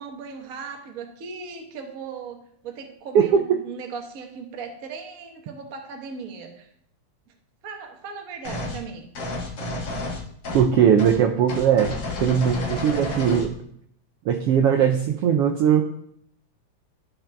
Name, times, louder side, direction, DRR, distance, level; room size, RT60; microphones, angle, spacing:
voice 1, 0.0-6.7 7.6-9.1, right 5 dB, 55° right, 2 dB, 0.9 m, -37 dB
voice 2, 3.1-3.6 10.5-13.5 14.2-15.8, right 8 dB, 75° right, 3 dB, 1.4 m, -20 dB
sound 1, 8.4-8.8 9.1-10.7 11.0-11.2 11.5-13.5, left 2 dB, 45° left, 1.7 m, -31 dB
12.5 x 5.9 x 3.5 m, 0.70 s
omnidirectional pair, 3.4 m